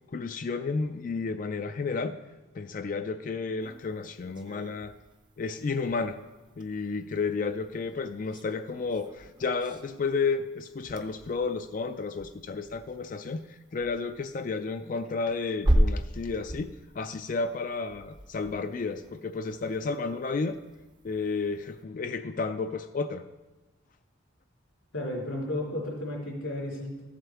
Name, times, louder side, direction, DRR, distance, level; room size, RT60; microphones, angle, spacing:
voice 1, 0.1-2.2 2.5-4.9 5.4-6.2 6.6-20.6 21.0-23.2, left 4 dB, 40° left, 8 dB, 0.3 m, -32 dB
sound 1, 3.6-21.8, right 1 dB, 20° right, 0.6 m, -36 dB
voice 2, 24.9-27.0, left 1 dB, 80° left, -4 dB, 3.3 m, -33 dB
14.5 x 7.5 x 3.4 m, 1.2 s
head